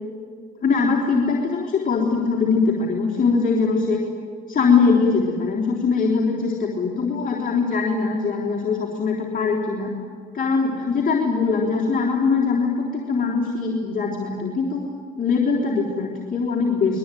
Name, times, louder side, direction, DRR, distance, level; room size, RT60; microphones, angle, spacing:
voice 1, 0.6-4.0 4.5-9.9 10.3-14.8 15.2-17.0, left 4 dB, 45° left, -2 dB, 3.8 m, -21 dB
25.5 x 21.5 x 9.3 m, 2.3 s
cardioid pair, 90°, 20 cm